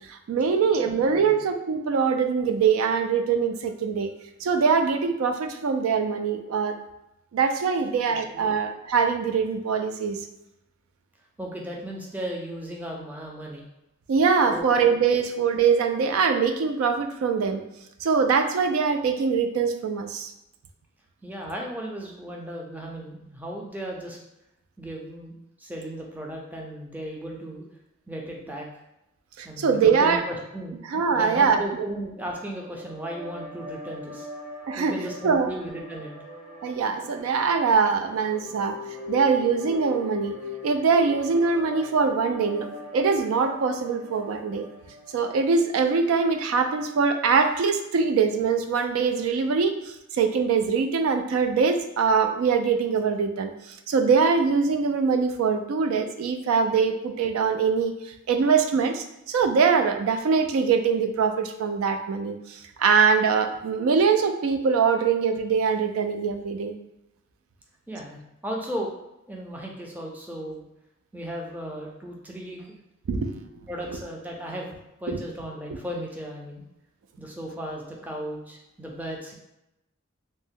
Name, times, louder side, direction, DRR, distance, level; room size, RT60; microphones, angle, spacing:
voice 1, 0.1-4.1 4.4-6.8 7.3-10.2 14.1-17.6 18.0-20.3 29.4-30.2 30.9-31.9 34.7-35.5 36.6-38.8 39.1-40.3 40.6-42.7 42.9-44.7 45.1-57.9 58.3-66.7 73.1-73.3 75.1-75.2, right 5 dB, 85° right, 7 dB, 0.3 m, -23 dB
voice 2, 0.7-1.4 8.1-8.5 11.4-13.6 14.5-14.7 21.2-24.2 24.8-27.6 28.1-28.7 29.4-30.8 31.1-34.3 34.8-36.1 67.9-68.9 69.3-70.7 71.1-72.8 73.1-73.2 73.7-74.7 75.0-76.6 77.2-79.3, equal, 10° right, -1 dB, 0.4 m, -36 dB
sound 1, 32.4-45.8, left 3 dB, 35° right, 1.1 m, -40 dB
2.6 x 2.1 x 3.6 m, 0.87 s
head